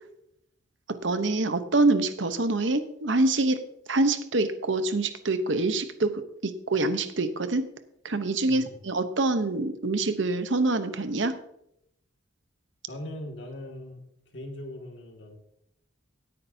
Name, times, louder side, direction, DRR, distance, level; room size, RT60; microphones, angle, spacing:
voice 1, 1.0-3.6 3.9-6.1 6.4-7.7 8.0-11.4, right 2 dB, 65° right, 10 dB, 0.9 m, -25 dB
voice 2, 12.9-14.0 14.3-15.4, left 1 dB, 65° left, 2 dB, 2.2 m, -40 dB
16.5 x 9.9 x 2.8 m, 0.76 s
head